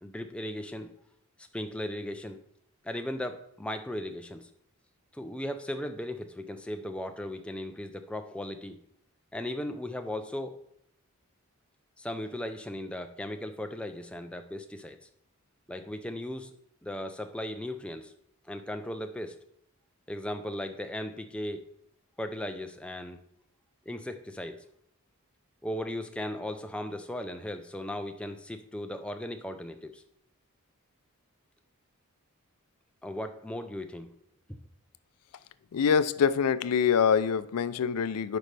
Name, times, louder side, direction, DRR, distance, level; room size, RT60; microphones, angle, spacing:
voice 1, 0.0-0.9 1.5-2.4 2.8-4.5 5.1-8.8 9.3-10.6 12.0-15.0 15.7-16.5 16.8-18.1 18.5-19.4 20.1-21.7 22.2-23.2 23.9-24.5 25.6-30.0 33.0-34.1 34.5-34.6, left 1 dB, 5° left, 0.4 m, -37 dB
voice 2, 35.7-38.4, left 7 dB, 85° left, 0.4 m, -25 dB
9.4 x 5.2 x 3.3 m
head